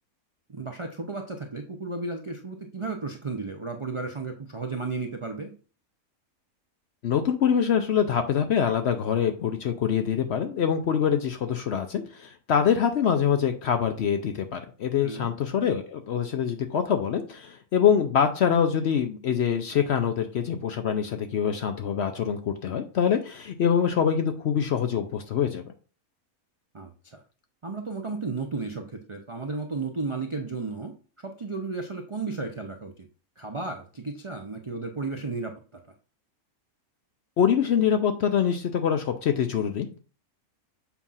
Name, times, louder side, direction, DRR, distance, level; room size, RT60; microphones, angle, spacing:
voice 1, 0.5-5.5 15.0-15.3 26.7-27.2 27.6-30.9 31.2-33.1 33.4-35.5, right 3 dB, 50° right, 3 dB, 0.3 m, -33 dB
voice 2, 7.0-25.7 37.4-40.0, left 8 dB, 65° left, 7 dB, 0.7 m, -25 dB
7.1 x 2.4 x 5.5 m, 0.37 s
omnidirectional pair, 1.6 m